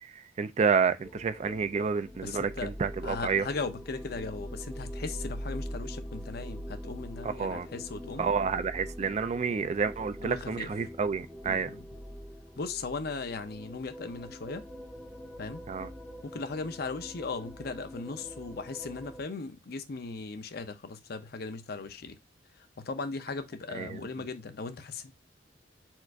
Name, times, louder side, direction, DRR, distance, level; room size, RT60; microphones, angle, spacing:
voice 1, 0.4-3.4 7.2-7.7 8.2-11.7 15.7-15.9 23.7-24.0, right 5 dB, 35° right, 0.3 m, -29 dB
sound 1, 1.0-19.2, equal, 5° left, 0.7 m, -43 dB
voice 2, 2.2-2.7 3.0-8.3 10.2-10.7 11.4-11.9 12.6-14.6 15.4-15.6 16.2-22.2 22.8-25.1, left 4 dB, 55° left, 0.6 m, -38 dB
4.4 x 2.5 x 4.5 m
head